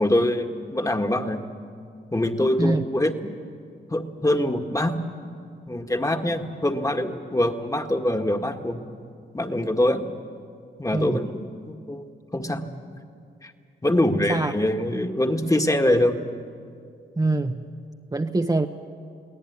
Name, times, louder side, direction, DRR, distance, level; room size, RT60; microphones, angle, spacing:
voice 1, 0.0-1.4 2.1-3.3 3.9-5.0 5.7-8.8 9.3-10.1 10.8-12.0 12.3-12.6 13.4-13.5 13.8-16.1, left 1 dB, 15° left, 5 dB, 1.8 m, -24 dB
voice 2, 14.1-14.5 17.2-17.6 18.1-18.7, right 2 dB, 20° right, 4 dB, 1.0 m, -24 dB
23.0 x 17.0 x 9.6 m, 2.3 s
cardioid pair, 55°, 20 cm